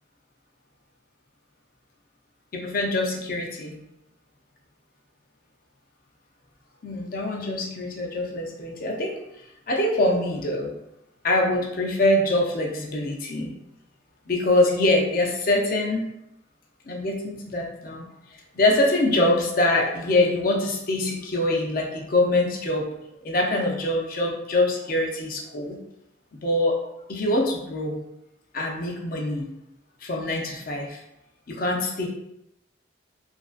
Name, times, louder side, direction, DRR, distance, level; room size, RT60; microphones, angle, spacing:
voice 1, 2.5-3.8 6.8-9.2 9.7-10.7 11.2-13.5 14.3-16.0 16.9-18.1 18.5-22.9 23.2-25.8 26.3-26.8 27.1-28.0 28.5-29.5 30.0-31.0 31.5-32.1, left 1 dB, 50° left, 0 dB, 0.5 m, -24 dB
2.9 x 2.5 x 2.4 m, 0.84 s
head